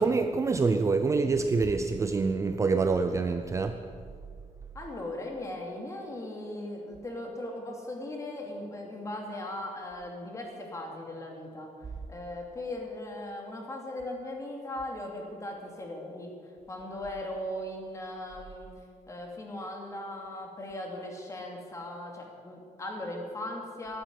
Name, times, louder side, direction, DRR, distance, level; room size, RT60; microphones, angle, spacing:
voice 1, 0.0-3.8, right 4 dB, 20° right, 7 dB, 0.5 m, -26 dB
voice 2, 4.7-18.7 19.1-24.0, left 1 dB, 20° left, 1 dB, 2.6 m, -38 dB
14.0 x 12.0 x 8.3 m, 2.2 s
wide cardioid pair, 180°, 14 cm